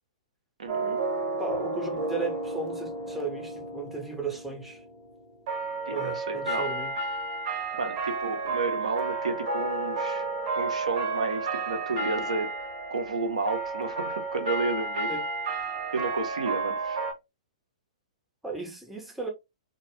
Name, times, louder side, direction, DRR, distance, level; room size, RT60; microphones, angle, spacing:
voice 1, 0.6-1.0 5.9-6.7 7.8-10.3 10.6-12.5 12.9-15.1 15.9-17.0, right 3 dB, 75° right, 0.6 m, -31 dB
sound 1, 0.7-17.1, right 3 dB, 50° right, 0.9 m, -32 dB
voice 2, 1.4-4.8 5.9-6.9 15.1-15.2 18.4-19.3, right 3 dB, 5° right, 0.7 m, -35 dB
2.2 x 2.1 x 3.0 m
figure-of-eight pair, 110°, 4 cm